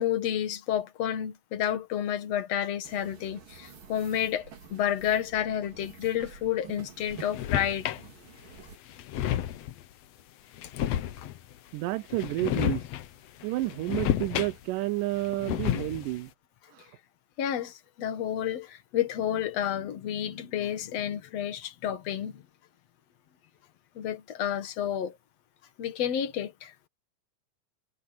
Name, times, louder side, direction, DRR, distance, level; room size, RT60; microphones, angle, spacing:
voice 1, 0.0-7.9 11.2-11.3 17.4-22.4 24.0-25.2 25.8-26.7, left 10 dB, 55° left, 2.2 m, -30 dB
sound 1, 2.8-8.8, right 6 dB, 60° right, 5.2 m, -49 dB
sound 2, 7.1-8.1 8.6-8.7 8.9-9.8 10.5-11.5 12.1-13.1 13.4-14.8 15.1-16.2, left 11 dB, 90° left, 1.4 m, -31 dB
voice 2, 11.7-12.8 13.4-16.3, right 18 dB, 80° right, 2.1 m, -30 dB
omnidirectional pair, 4.4 m